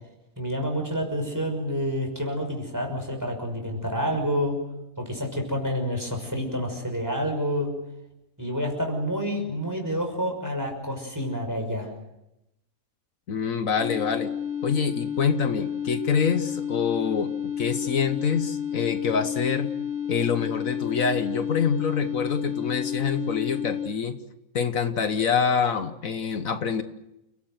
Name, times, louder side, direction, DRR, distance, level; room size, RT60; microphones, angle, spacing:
voice 1, 0.4-4.6 5.0-7.7 8.4-11.9, equal, 10° right, 3 dB, 6.0 m, -28 dB
voice 2, 13.3-14.3 14.6-19.7 20.1-24.2 24.5-26.8, left 6 dB, 70° left, 9 dB, 1.5 m, -26 dB
sound 1, 13.8-23.9, left 8 dB, 70° right, 2.6 m, -31 dB
29.5 x 17.5 x 7.9 m, 0.90 s
omnidirectional pair, 1.5 m